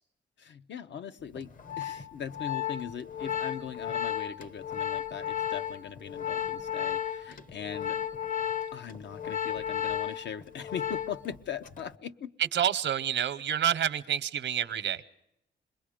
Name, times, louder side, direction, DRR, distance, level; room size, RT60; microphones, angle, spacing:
voice 1, 0.4-8.0 8.7-12.3, left 8 dB, 75° left, 0.8 m, -40 dB
Organ, 1.4-11.4 11.6-12.0, left 9 dB, 45° left, 0.9 m, -34 dB
voice 2, 12.5-15.0, right 10 dB, 85° right, 0.8 m, -28 dB
26.5 x 21.5 x 5.1 m
wide cardioid pair, 160°, 19 cm